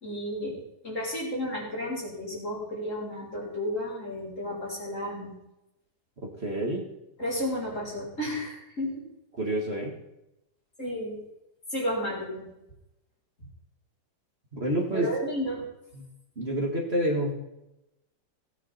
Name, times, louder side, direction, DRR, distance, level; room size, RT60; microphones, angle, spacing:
voice 1, 0.0-5.3 7.2-9.0 10.8-11.2 11.7-12.5 14.9-15.7, equal, 45° left, -4 dB, 4.5 m, -32 dB
voice 2, 6.2-6.8 9.4-9.9 14.5-15.1 15.9-16.0 16.4-17.3, right 1 dB, 35° right, -1 dB, 2.2 m, -28 dB
17.5 x 9.4 x 4.3 m, 0.88 s
omnidirectional pair, 1.9 m